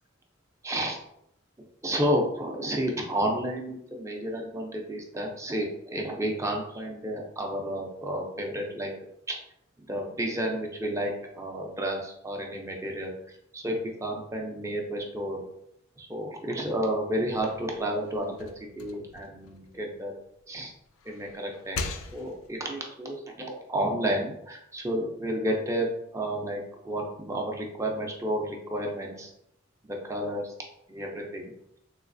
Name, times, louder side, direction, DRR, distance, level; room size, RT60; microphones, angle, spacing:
voice 1, 0.6-1.0 1.8-8.9 9.3-9.4 9.9-15.4 16.0-18.5 18.8-20.1 20.5-20.7 21.1-21.8 22.1-25.9 26.1-29.3 29.8-30.5 30.9-31.4, right 1 dB, 15° right, 0 dB, 0.4 m, -31 dB
sound 1, 17.2-20.4 20.8-22.6, left 4 dB, 65° left, 0.3 m, -41 dB
3.3 x 3.0 x 2.5 m, 0.76 s
head